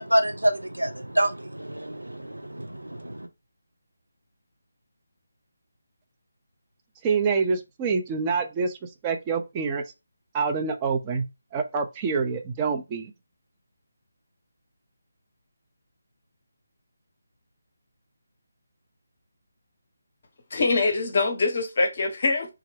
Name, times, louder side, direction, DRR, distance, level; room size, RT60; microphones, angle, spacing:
voice 1, 0.0-3.3, right 1 dB, 75° right, 0.6 m, -27 dB
voice 2, 7.0-9.8 10.3-11.2 11.5-13.1, right 5 dB, 20° right, 0.4 m, -26 dB
voice 3, 20.5-22.5, left 3 dB, 40° left, 0.7 m, -24 dB
2.3 x 2.1 x 3.3 m
figure-of-eight pair, 150°, 0 cm